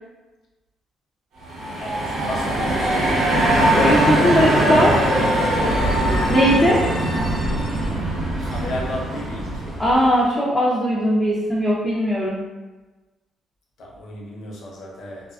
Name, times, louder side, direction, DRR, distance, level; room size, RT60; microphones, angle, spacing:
sound 1, 1.4-10.1, right 1 dB, 85° right, 0.9 m, -21 dB
voice 1, 1.8-5.6 8.5-9.8 13.8-15.3, left 1 dB, 75° left, -3 dB, 0.7 m, -34 dB
voice 2, 3.7-5.0 6.3-6.8 9.8-12.4, equal, 10° left, -6 dB, 0.5 m, -19 dB
2.4 x 2.3 x 2.3 m, 1.2 s
cardioid pair, 90°, 0 cm